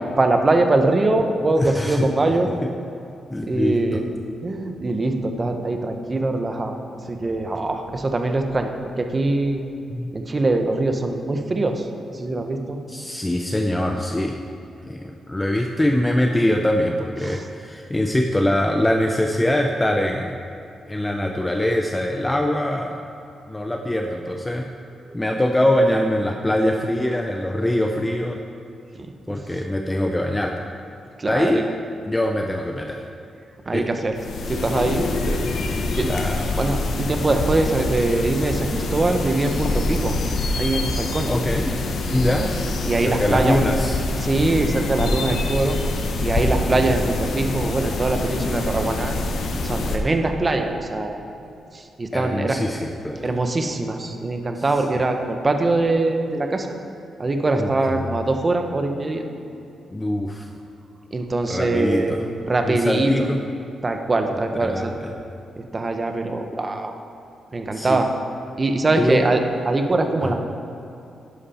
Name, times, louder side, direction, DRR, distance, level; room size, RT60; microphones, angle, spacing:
voice 1, 0.2-2.5 3.5-4.1 4.4-6.7 7.1-8.7 9.0-9.6 10.1-11.9 12.1-12.8 17.2-17.5 25.1-25.2 28.9-29.6 31.2-31.6 33.7-34.2 34.5-35.4 35.9-36.1 36.6-40.1 40.6-41.3 42.8-43.6 44.2-45.8 46.2-49.2 49.6-51.2 51.7-52.6 53.2-56.7 57.2-59.2 61.1-62.2 62.4-63.3 63.8-64.9 65.6-66.9 67.5-68.1 68.6-70.3, right 2 dB, 25° right, 5 dB, 0.9 m, -22 dB
voice 2, 1.6-2.3 3.3-4.0 9.9-10.1 12.9-14.4 14.8-20.4 20.9-23.0 23.5-24.7 25.1-28.4 29.3-30.6 31.3-31.7 32.1-33.0 33.7-33.9 35.6-36.4 41.2-41.7 42.1-42.5 43.0-44.0 52.1-53.4 54.6-54.7 57.6-57.7 58.0-58.2 59.9-60.5 61.5-62.2 62.6-63.4 64.5-65.1 67.7-68.0 69.0-69.2 70.2-70.3, left 1 dB, 10° left, 3 dB, 0.5 m, -23 dB
sound 1, 34.2-50.0, left 2 dB, 65° left, 1.2 m, -25 dB
11.0 x 11.0 x 4.3 m, 2.7 s
wide cardioid pair, 140°, 0 cm